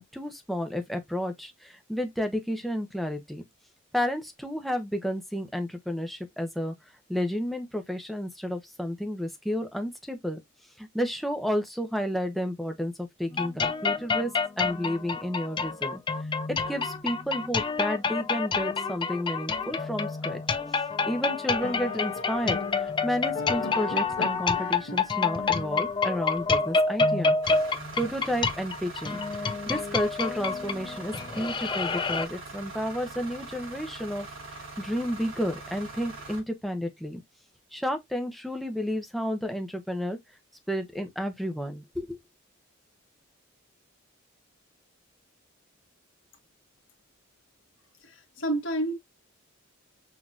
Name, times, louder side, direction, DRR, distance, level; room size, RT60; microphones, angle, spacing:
voice 1, 0.0-3.4 3.9-6.7 7.1-10.4 10.8-14.3 14.6-16.0 16.5-20.6 21.1-27.4 28.0-37.2 37.7-40.2 40.7-42.2, equal, ahead, 0.8 m, -31 dB
sound 1, 13.3-32.3, left 4 dB, 20° left, 0.3 m, -28 dB
sound 2, 21.6-26.9, left 4 dB, 75° left, 1.2 m, -39 dB
sound 3, 27.4-36.4, right 3 dB, 70° right, 3.2 m, -42 dB
voice 2, 48.0-48.9, right 1 dB, 60° left, 1.6 m, -29 dB
6.1 x 2.8 x 2.4 m
head